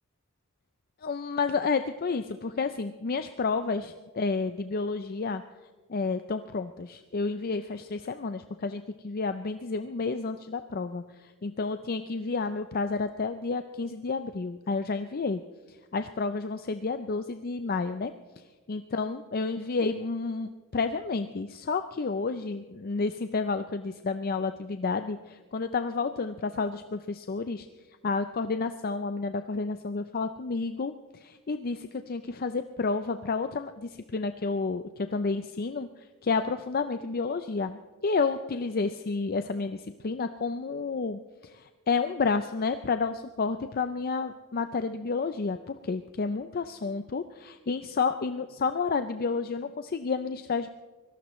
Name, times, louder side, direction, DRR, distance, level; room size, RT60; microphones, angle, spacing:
voice 1, 1.0-5.4 5.9-11.0 11.4-15.4 15.9-18.1 18.7-27.7 28.0-34.8 35.1-35.9 36.2-50.7, left 4 dB, 45° left, 9 dB, 0.5 m, -30 dB
24.5 x 18.0 x 3.1 m, 1.3 s
head